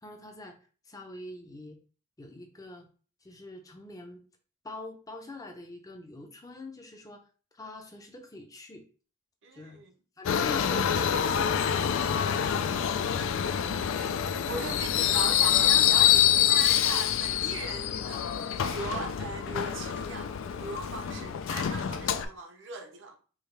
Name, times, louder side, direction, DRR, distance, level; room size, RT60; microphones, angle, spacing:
voice 1, 0.0-0.5 0.9-1.8 2.2-2.9 3.2-4.2 4.6-7.2 7.5-8.8 9.5-9.8 10.2-13.0 20.9-21.4 21.9-22.1, left 2 dB, 15° left, 0.6 m, -44 dB
voice 2, 9.4-9.9 13.4-13.6 13.9-14.1 14.5-23.2, right 3 dB, 60° right, 0.6 m, -39 dB
Subway metro underground, 10.2-22.2, left 10 dB, 65° left, 0.3 m, -26 dB
4.8 x 2.2 x 3.2 m
head